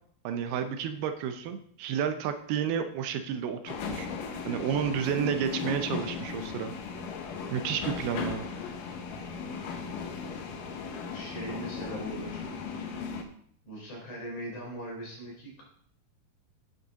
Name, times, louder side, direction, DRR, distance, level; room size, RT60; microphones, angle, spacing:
voice 1, 0.2-4.1 4.5-6.7 7.5-8.5, right 8 dB, 80° right, 7 dB, 2.6 m, -31 dB
sound 1, 3.7-13.2, left 5 dB, 65° left, 2.3 m, -37 dB
voice 2, 11.1-12.9 13.6-15.6, right 1 dB, 50° left, -2 dB, 5.0 m, -40 dB
9.3 x 8.3 x 3.7 m, 0.62 s
omnidirectional pair, 4.6 m